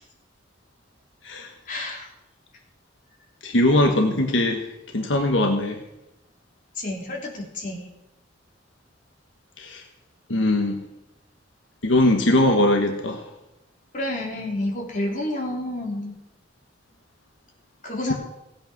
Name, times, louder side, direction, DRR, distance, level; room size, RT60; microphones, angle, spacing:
voice 1, 1.7-2.1 6.8-7.9 13.9-16.2 17.8-18.1, left 1 dB, 45° left, -1 dB, 3.3 m, -29 dB
voice 2, 3.4-5.8 9.6-9.8 10.3-10.8 11.8-13.3, left 1 dB, 90° left, 4 dB, 1.4 m, -21 dB
17.0 x 8.9 x 6.0 m, 0.92 s
head